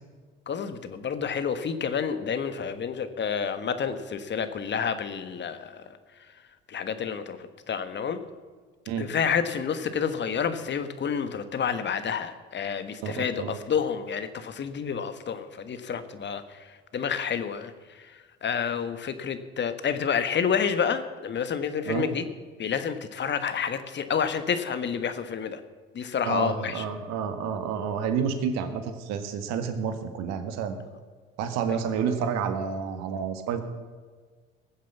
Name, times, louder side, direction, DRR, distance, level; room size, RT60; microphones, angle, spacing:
voice 1, 0.5-6.0 6.7-8.2 9.0-22.3 22.6-25.6 25.9-26.8, left 7 dB, 40° left, 10 dB, 1.5 m, -29 dB
voice 2, 13.0-13.6 21.9-22.0 26.2-30.8 31.4-33.6, right 7 dB, 65° right, 8 dB, 1.7 m, -29 dB
19.5 x 7.4 x 7.2 m, 1.5 s
hypercardioid pair, 70°, 29 cm